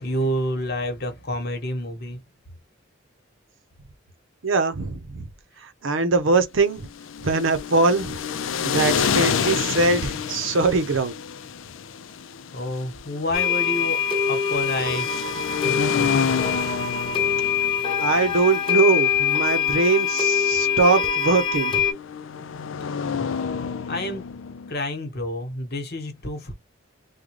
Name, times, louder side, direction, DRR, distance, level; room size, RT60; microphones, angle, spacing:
voice 1, 0.0-2.2 12.5-15.3 15.6-16.4 23.1-23.3 23.9-24.3 24.7-26.5, equal, 55° left, 1.2 m, -29 dB
voice 2, 4.4-5.3 5.6-6.9 7.2-8.2 8.6-11.2 18.0-21.8, right 3 dB, 75° right, 0.7 m, -22 dB
sound 1, 6.8-24.7, left 7 dB, 80° left, 0.4 m, -29 dB
sound 2, 13.3-21.9, left 8 dB, 25° left, 1.0 m, -24 dB
3.7 x 2.2 x 3.1 m
head